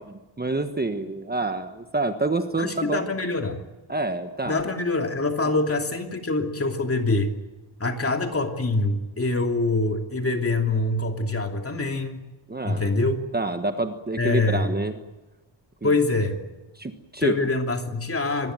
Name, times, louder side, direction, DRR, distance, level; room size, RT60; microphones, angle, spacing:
voice 1, 0.0-3.1 3.9-4.6 12.5-12.9 13.3-15.0 15.8-15.9 16.8-17.3, right 2 dB, 20° right, 7 dB, 1.4 m, -28 dB
voice 2, 2.6-3.6 4.5-7.3 7.8-12.2 12.6-13.2 14.2-14.8 15.8-16.4 17.2-18.5, left 2 dB, 30° left, 4 dB, 2.9 m, -25 dB
25.5 x 20.0 x 9.0 m, 1.1 s
wide cardioid pair, 165°, 47 cm